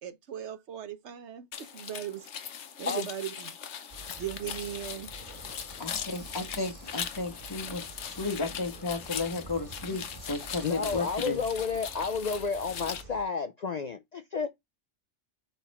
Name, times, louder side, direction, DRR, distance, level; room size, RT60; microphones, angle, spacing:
voice 1, 0.0-2.3 2.8-3.6 4.2-5.1, right 10 dB, 75° right, 1.2 m, -38 dB
sound 1, 1.5-13.0, left 8 dB, 75° left, 1.1 m, -40 dB
sound 2, 3.9-13.2, right 2 dB, 30° right, 3.6 m, -48 dB
voice 2, 5.8-11.4, left 3 dB, 20° left, 1.4 m, -34 dB
voice 3, 10.6-14.5, left 5 dB, 55° left, 0.5 m, -31 dB
5.9 x 4.0 x 4.2 m
omnidirectional pair, 1.2 m